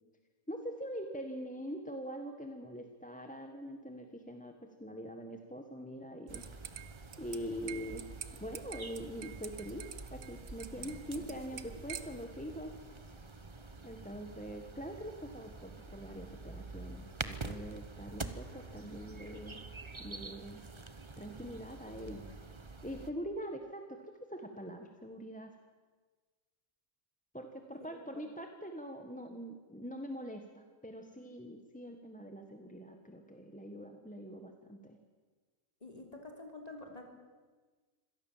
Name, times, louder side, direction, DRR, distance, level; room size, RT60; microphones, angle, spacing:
voice 1, 0.5-6.5 7.2-8.1 8.4-12.7 13.8-19.6 20.0-20.6 21.2-22.3 22.8-25.6 27.3-35.0, equal, 5° left, 4 dB, 1.4 m, -44 dB
sound 1, 6.3-23.1, right 3 dB, 20° right, 1.0 m, -47 dB
sound 2, 6.3-12.3, right 9 dB, 75° right, 1.6 m, -48 dB
voice 2, 10.7-11.2 21.9-22.3 35.8-37.0, left 2 dB, 25° left, 2 dB, 3.8 m, -49 dB
25.5 x 18.0 x 7.4 m, 1.4 s
omnidirectional pair, 1.6 m